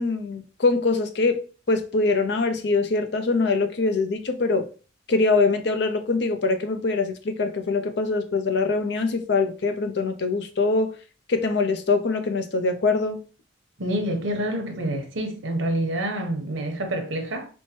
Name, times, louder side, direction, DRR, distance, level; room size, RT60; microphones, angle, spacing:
voice 1, 0.0-1.4 1.7-4.7 5.1-10.9 11.3-13.2, left 3 dB, 60° left, 0.5 m, -23 dB
voice 2, 13.8-17.5, right 1 dB, 85° right, 0.9 m, -27 dB
4.4 x 2.2 x 2.8 m
head